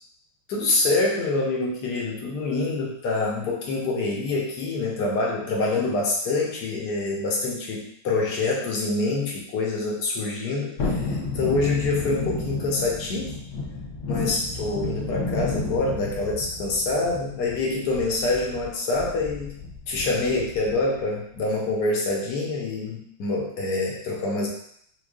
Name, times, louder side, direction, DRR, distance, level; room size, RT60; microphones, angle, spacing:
voice 1, 0.5-13.4 14.1-19.5 19.9-24.5, left 3 dB, 60° left, -2 dB, 1.3 m, -26 dB
Thunderstorm, 10.8-21.0 21.3-21.4, left 3 dB, 85° left, 1.6 m, -32 dB
6.1 x 2.4 x 2.4 m, 0.68 s
omnidirectional pair, 2.1 m